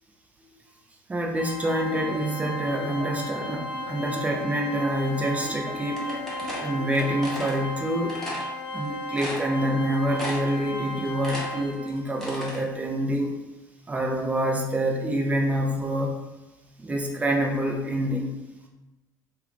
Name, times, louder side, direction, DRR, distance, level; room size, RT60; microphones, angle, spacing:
voice 1, 1.1-6.1 6.6-8.2 8.7-13.3 13.9-16.2 16.8-18.3, right 1 dB, 15° right, 1 dB, 0.5 m, -26 dB
Organ, 1.4-12.1, left 1 dB, 50° left, 0.3 m, -35 dB
sound 1, 2.1-7.3, equal, 60° right, 0.9 m, -40 dB
sound 2, 6.0-7.6 8.1-8.5 8.8-8.9 9.2-9.8 10.2-10.6 10.9-12.6, left 1 dB, 5° left, 0.8 m, -35 dB
2.3 x 2.1 x 3.1 m, 1.1 s
figure-of-eight pair, 60°, 10 cm